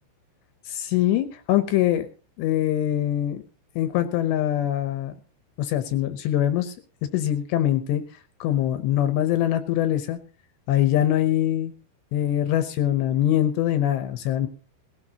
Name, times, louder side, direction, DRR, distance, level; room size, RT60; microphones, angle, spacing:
voice 1, 0.7-2.1 2.4-3.4 3.8-5.2 5.6-6.7 7.1-8.0 8.4-10.2 10.7-11.7 12.1-14.5, left 12 dB, 80° left, 10 dB, 2.6 m, -23 dB
19.0 x 16.0 x 2.8 m, 0.35 s
omnidirectional pair, 5.7 m